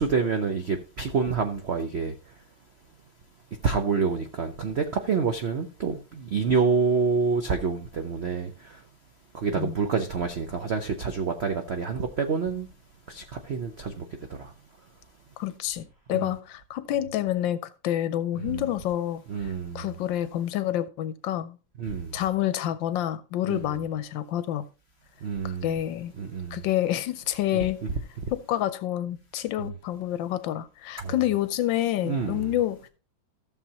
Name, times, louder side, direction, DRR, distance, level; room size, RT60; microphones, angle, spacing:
voice 1, 0.0-2.1 3.6-8.5 9.4-12.7 13.1-14.0 14.4-14.5 16.1-16.3 18.4-18.7 19.3-19.9 21.8-22.1 23.5-23.6 25.2-25.8 26.2-26.6 27.9-28.0 29.6-29.7 31.0-31.3 32.0-32.5, right 5 dB, 85° right, 0.5 m, -27 dB
voice 2, 15.4-21.6 22.1-24.6 25.4-26.1 26.5-27.8 28.3-32.9, left 12 dB, 75° left, 1.2 m, -28 dB
14.5 x 6.7 x 2.9 m
omnidirectional pair, 2.2 m